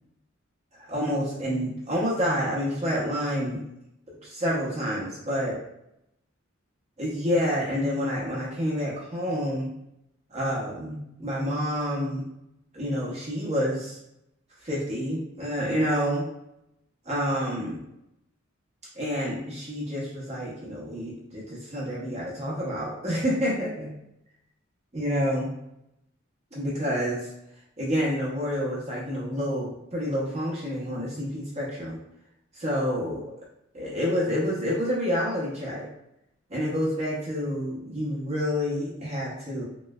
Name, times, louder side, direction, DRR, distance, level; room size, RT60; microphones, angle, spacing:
voice 1, 0.8-3.6 4.2-5.6 7.0-9.7 10.3-12.3 12.7-14.0 14.6-16.2 17.0-17.8 18.9-24.0 24.9-25.5 26.5-27.3 27.8-32.0 32.5-33.2 33.7-35.9 36.5-39.6, equal, 35° right, -5 dB, 0.8 m, -28 dB
3.2 x 2.9 x 2.3 m, 0.82 s
head